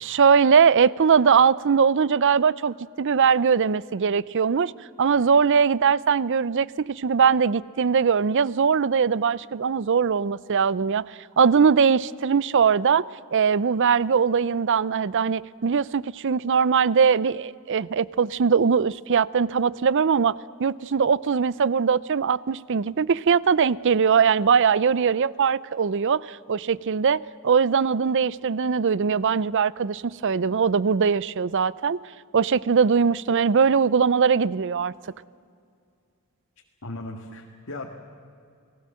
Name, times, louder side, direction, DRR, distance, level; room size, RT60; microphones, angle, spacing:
voice 1, 0.0-4.7 5.0-13.0 13.3-32.0 32.3-34.9, right 6 dB, 55° right, 0.5 m, -21 dB
voice 2, 36.8-37.9, left 2 dB, 65° left, 2.0 m, -36 dB
29.5 x 19.0 x 7.7 m
head